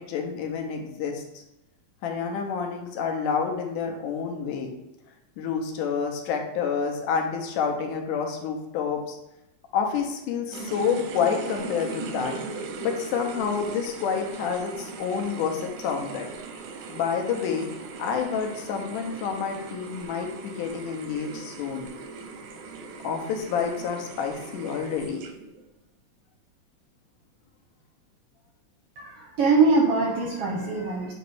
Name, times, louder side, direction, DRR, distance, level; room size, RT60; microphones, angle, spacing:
voice 1, 0.0-1.4 2.0-4.7 5.4-9.2 9.7-12.4 12.8-16.3 16.9-17.7 18.0-21.9 23.0-25.2, left 6 dB, 80° left, 3 dB, 2.4 m, -28 dB
sound 1, 10.5-25.6, right 4 dB, 90° right, 2.3 m, -39 dB
voice 2, 29.0-31.1, right 3 dB, 70° right, -2 dB, 1.5 m, -23 dB
7.7 x 3.0 x 4.7 m, 0.90 s
omnidirectional pair, 3.6 m